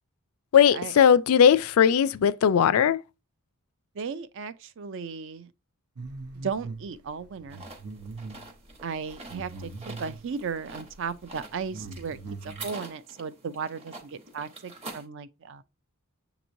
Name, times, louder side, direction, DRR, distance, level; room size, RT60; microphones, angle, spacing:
voice 1, 0.5-3.0, left 8 dB, 70° left, 0.3 m, -19 dB
voice 2, 3.9-5.5 6.4-7.7 8.8-15.6, right 5 dB, 55° right, 0.5 m, -36 dB
sound 1, 6.0-6.8 7.2-10.3 10.9-11.1 11.4-12.7, right 3 dB, 85° right, 0.8 m, -41 dB
sound 2, 7.5-15.1, right 3 dB, 25° right, 1.0 m, -46 dB
6.9 x 3.0 x 2.5 m
head